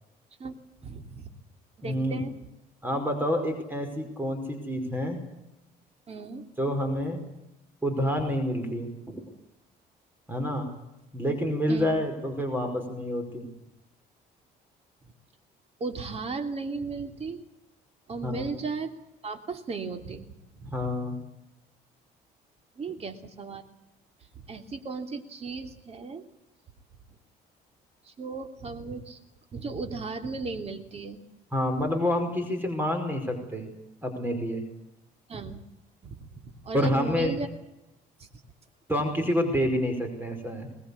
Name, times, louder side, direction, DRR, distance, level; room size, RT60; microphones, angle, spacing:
voice 1, 0.8-1.3 1.8-2.3 6.1-6.5 11.7-11.9 15.8-17.4 18.1-18.9 19.2-20.3 20.6-20.7 22.8-23.6 24.3-26.2 28.1-29.2 29.5-31.2 35.3-35.6 36.0-37.5, right 4 dB, 40° right, 6 dB, 3.1 m, -35 dB
voice 2, 1.8-2.2 2.8-5.2 6.6-7.2 7.8-9.2 10.3-10.7 11.1-13.5 18.2-18.5 20.6-21.2 31.5-33.7 34.0-34.6 36.7-37.3 38.9-40.7, equal, 10° right, 5 dB, 5.2 m, -28 dB
22.5 x 20.0 x 8.6 m, 0.93 s
cardioid pair, 110°, 17 cm